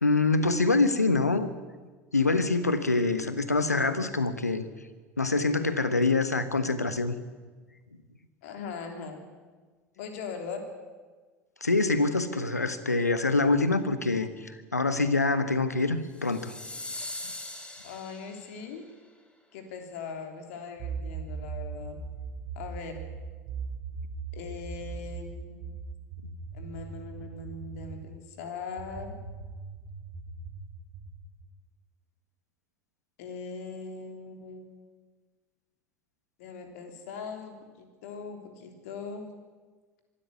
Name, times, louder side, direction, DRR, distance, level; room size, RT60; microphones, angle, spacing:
voice 1, 0.0-1.5 2.1-4.6 5.2-7.2 11.6-16.5, left 3 dB, 90° left, 12 dB, 1.2 m, -25 dB
voice 2, 8.4-9.2 10.0-10.7 17.8-18.8 19.5-22.0 22.6-23.1 24.3-25.7 26.5-29.2 33.2-34.7 36.4-39.3, left 5 dB, 65° left, 5 dB, 3.4 m, -40 dB
sound 1, 16.1-18.6, left 2 dB, 15° left, 3.7 m, -40 dB
sound 2, 20.8-28.1 28.8-31.2, right 5 dB, 55° right, 5.1 m, -39 dB
24.0 x 13.0 x 9.5 m, 1.4 s
figure-of-eight pair, 70°, 8 cm